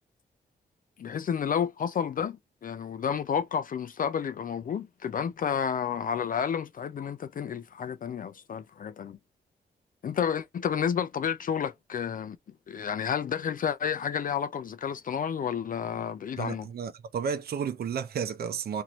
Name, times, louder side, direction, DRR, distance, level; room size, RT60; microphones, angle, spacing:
voice 1, 1.0-9.2 10.0-12.4 12.7-16.7, left 7 dB, 50° left, 0.4 m, -31 dB
voice 2, 16.4-18.8, right 7 dB, 60° right, 0.6 m, -32 dB
2.9 x 2.6 x 3.0 m
cardioid pair, 65°, 18 cm